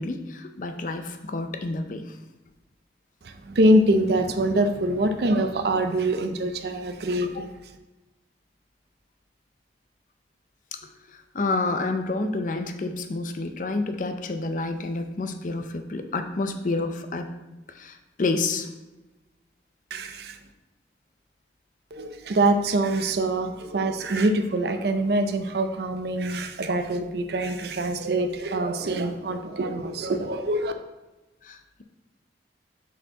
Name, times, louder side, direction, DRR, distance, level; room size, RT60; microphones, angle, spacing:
voice 1, 0.0-2.2 7.3-7.5 10.7-10.8 11.1-17.3 17.7-18.7 31.4-31.8, left 3 dB, 45° left, 7 dB, 0.5 m, -29 dB
voice 2, 3.2-7.5 19.9-20.4 21.9-30.7, right 1 dB, 60° right, 8 dB, 0.5 m, -24 dB
6.4 x 4.5 x 3.8 m, 1.1 s
head